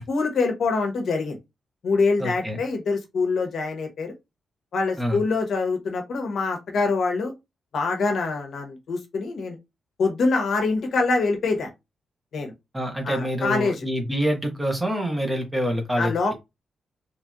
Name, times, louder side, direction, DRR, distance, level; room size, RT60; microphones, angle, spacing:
voice 1, 0.1-1.4 1.8-4.1 4.7-7.3 7.7-9.6 10.0-11.7 12.3-12.5 13.0-13.9 16.0-16.3, left 3 dB, 60° left, 0.8 m, -24 dB
voice 2, 2.2-2.6 5.0-5.2 12.7-16.1, equal, 10° right, 0.8 m, -26 dB
3.0 x 2.8 x 2.3 m
wide cardioid pair, 160°, 0 cm